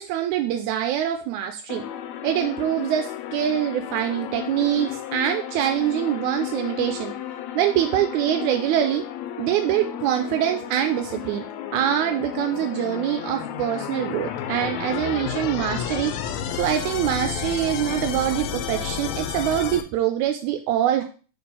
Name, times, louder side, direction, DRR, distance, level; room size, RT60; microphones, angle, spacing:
voice 1, 0.0-1.8 2.2-7.1 7.6-9.1 9.4-11.4 11.7-16.1 16.6-21.0, right 11 dB, 85° right, 5 dB, 2.0 m, -24 dB
sound 1, 1.7-19.8, left 9 dB, 75° left, 1.8 m, -32 dB
4.6 x 4.3 x 5.4 m, 0.37 s
omnidirectional pair, 3.4 m